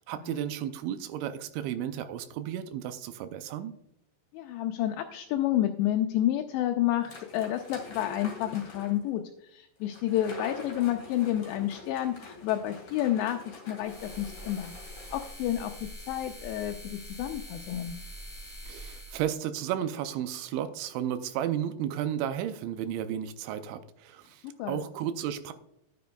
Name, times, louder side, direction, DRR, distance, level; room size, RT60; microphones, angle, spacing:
voice 1, 0.1-3.7 18.7-25.5, right 10 dB, 85° right, 9 dB, 2.9 m, -33 dB
voice 2, 4.3-9.2 9.5-14.7 15.1-17.9 24.6-24.8, left 12 dB, 80° left, 4 dB, 2.7 m, -30 dB
sound 1, 7.0-9.0 9.9-15.3, left 3 dB, 30° left, 2.6 m, -45 dB
sound 2, 13.8-19.3, equal, 10° left, 3.4 m, -44 dB
10.5 x 10.0 x 2.3 m, 0.79 s
omnidirectional pair, 5.2 m